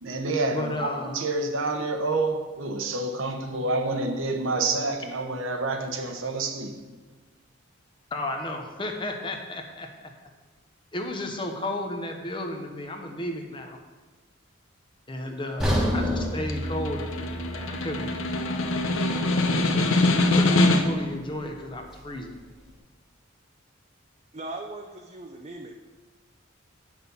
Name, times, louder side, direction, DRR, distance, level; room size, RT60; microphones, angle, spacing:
voice 1, 0.0-6.8, right 3 dB, 75° right, 5 dB, 1.0 m, -28 dB
voice 2, 0.5-1.2 8.1-9.9 10.9-13.8 15.1-18.2 19.7-22.3, left 1 dB, 25° left, 3 dB, 0.9 m, -33 dB
sound 1, 15.6-19.7 20.0-20.2 20.8-20.9, equal, 5° right, 1.4 m, -30 dB
Snare drum, 16.2-21.1, left 2 dB, 80° left, 0.8 m, -24 dB
voice 3, 24.3-25.9, right 2 dB, 30° right, 2 dB, 0.5 m, -39 dB
8.8 x 6.3 x 5.5 m, 1.3 s
head